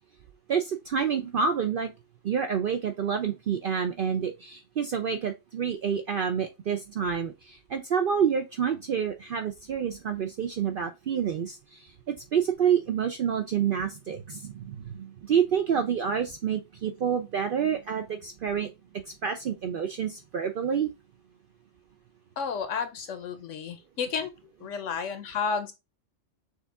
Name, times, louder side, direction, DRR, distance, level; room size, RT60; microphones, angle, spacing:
voice 1, 0.5-1.9 2.2-20.9, right 7 dB, 60° right, 0.6 m, -28 dB
voice 2, 22.4-24.3 24.6-25.7, left 6 dB, 75° left, 1.0 m, -31 dB
6.4 x 2.4 x 3.5 m
omnidirectional pair, 1.3 m